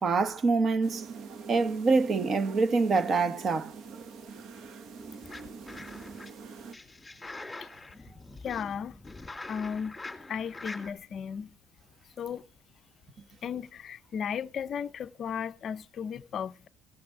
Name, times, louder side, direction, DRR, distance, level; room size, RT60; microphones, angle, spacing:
voice 1, 0.0-1.1 1.5-3.7, right 4 dB, 35° right, 0.9 m, -25 dB
sound 1, 0.8-6.8, right 5 dB, 60° right, 1.0 m, -44 dB
sound 2, 5.0-6.3 6.7-10.9, left 2 dB, 10° left, 2.2 m, -44 dB
voice 2, 8.4-9.0 9.5-10.0 10.3-11.5 12.2-12.4 13.4-16.7, left 7 dB, 45° left, 0.4 m, -35 dB
16.5 x 6.0 x 4.9 m
cardioid pair, 135°, 0 cm